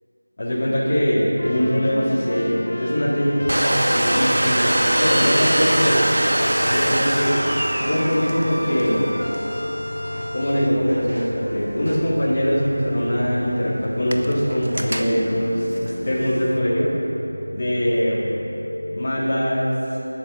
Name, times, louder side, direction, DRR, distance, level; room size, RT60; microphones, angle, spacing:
voice 1, 0.4-6.0 6.6-7.4 7.8-9.1 10.3-16.9 17.5-18.2 18.9-19.8, equal, 25° left, -9 dB, 3.4 m, -22 dB
sound 1, 1.4-19.1, left 1 dB, 75° left, 0.9 m, -32 dB
Domestic sounds home sounds, 3.5-16.6, right 1 dB, 70° right, 1.2 m, -24 dB
14.5 x 12.0 x 6.9 m, 3.0 s
figure-of-eight pair, 180°, 0 cm